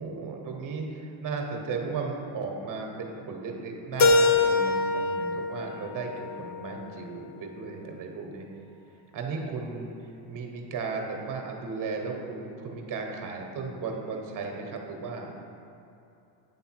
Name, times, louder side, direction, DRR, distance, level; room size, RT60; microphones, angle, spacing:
voice 1, 0.0-8.4 8.9-15.4, right 4 dB, 40° right, 2 dB, 1.2 m, -35 dB
Keyboard (musical), 4.0-6.9, left 3 dB, 35° left, 0.6 m, -24 dB
8.2 x 3.3 x 4.6 m, 2.8 s
supercardioid pair, 100°, 49 cm